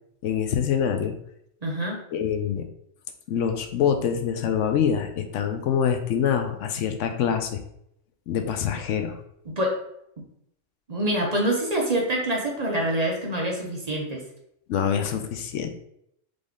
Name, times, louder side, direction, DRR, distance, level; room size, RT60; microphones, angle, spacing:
voice 1, 0.2-1.2 2.1-2.6 3.3-7.6 8.3-9.2 14.7-15.7, left 8 dB, 85° left, 7 dB, 0.9 m, -25 dB
voice 2, 1.6-2.0 9.5-9.8 10.9-14.2, right 1 dB, 35° right, -1 dB, 0.8 m, -26 dB
3.8 x 3.5 x 3.6 m, 0.74 s
omnidirectional pair, 1.2 m